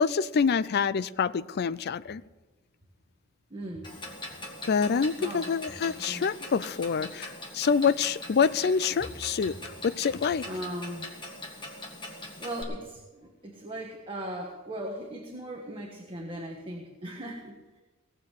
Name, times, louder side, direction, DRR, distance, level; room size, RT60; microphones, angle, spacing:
voice 1, 0.0-2.2 4.7-9.5 9.8-10.5, left 6 dB, 45° left, 16 dB, 0.4 m, -26 dB
voice 2, 3.5-3.9 5.2-5.5 5.8-6.2 6.5-6.6 10.5-11.1 12.4-17.5, right 1 dB, 25° right, 0 dB, 1.4 m, -38 dB
Clock, 3.8-12.6, left 1 dB, 20° left, 1.9 m, -42 dB
18.5 x 7.6 x 6.6 m, 1.2 s
head